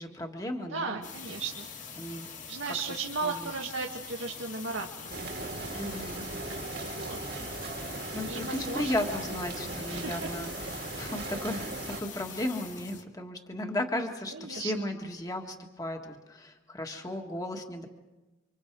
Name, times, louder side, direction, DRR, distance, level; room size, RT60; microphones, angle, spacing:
voice 1, 0.0-1.0 2.0-2.3 2.7-2.8 3.2-3.5 5.7-6.3 6.9-7.1 7.9-17.9, left 1 dB, 20° left, 3 dB, 1.7 m, -35 dB
voice 2, 0.7-1.7 2.5-5.2 6.8-7.2 8.2-9.2 9.9-10.3 14.3-14.9, right 4 dB, 85° right, 0 dB, 1.8 m, -36 dB
sound 1, 1.0-13.0, left 6 dB, 40° left, 1.9 m, -44 dB
sound 2, 5.1-12.0, right 3 dB, 55° right, 2.1 m, -38 dB
30.0 x 26.0 x 4.7 m, 1.1 s
head